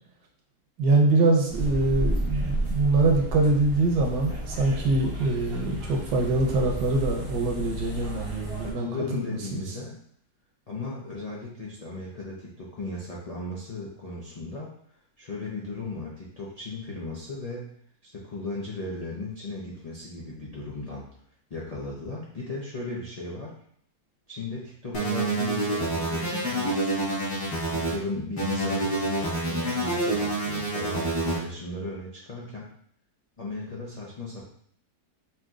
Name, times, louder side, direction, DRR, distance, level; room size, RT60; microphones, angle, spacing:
voice 1, 0.8-8.9 9.3-9.6, right 2 dB, 75° right, 0 dB, 1.4 m, -24 dB
sound 1, 1.5-8.7, right 1 dB, 30° right, 0.6 m, -32 dB
voice 2, 8.0-8.3 8.6-10.0 10.7-14.7 15.2-17.7 18.0-21.1 21.5-23.5 24.3-27.2 27.7-32.7 33.4-34.4, left 2 dB, 60° left, -5 dB, 0.4 m, -36 dB
sound 2, 24.9-27.9 28.4-31.4, right 2 dB, 45° left, 1.7 m, -27 dB
5.6 x 2.7 x 2.4 m, 0.64 s
omnidirectional pair, 1.8 m